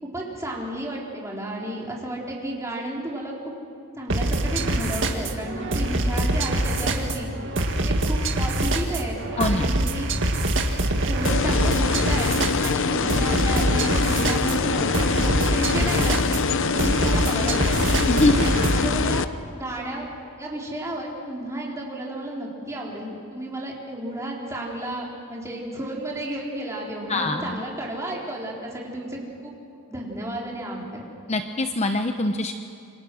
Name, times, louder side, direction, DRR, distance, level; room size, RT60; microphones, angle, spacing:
voice 1, 0.0-3.5 4.0-7.3 7.8-10.2 11.0-17.8 18.4-19.3 19.5-20.1 20.4-29.5 29.9-31.0, right 1 dB, 15° right, -3 dB, 4.3 m, -32 dB
sound 1, 4.1-18.9, right 1 dB, 55° right, 2.0 m, -24 dB
voice 2, 9.4-9.7 18.1-18.5 27.1-27.6 31.3-32.5, left 2 dB, 30° left, 6 dB, 0.9 m, -23 dB
sound 2, 11.2-19.2, left 5 dB, 60° left, 0.7 m, -24 dB
27.5 x 25.0 x 6.4 m, 2.6 s
head